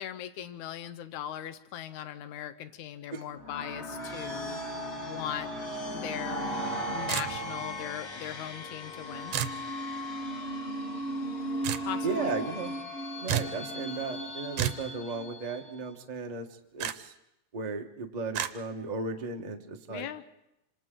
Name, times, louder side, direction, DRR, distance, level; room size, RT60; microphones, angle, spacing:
voice 1, 0.0-4.6 5.1-5.5 5.9-6.5 6.9-9.4 11.9-12.4 19.9-20.2, left 11 dB, 80° left, 12 dB, 2.3 m, -39 dB
sound 1, 3.3-15.9, equal, 25° left, 1.9 m, -37 dB
sound 2, 6.7-12.8, left 6 dB, 55° left, 1.6 m, -52 dB
sound 3, 7.1-7.6 9.3-9.6 11.6-11.9 13.3-13.6 14.6-14.9 16.8-17.0 18.3-18.5, right 10 dB, 70° right, 1.7 m, -31 dB
voice 2, 12.0-12.7 13.2-16.5 16.7-17.1 17.5-20.1, right 4 dB, 50° right, 3 dB, 0.4 m, -35 dB
27.0 x 26.0 x 3.9 m, 0.86 s
omnidirectional pair, 3.4 m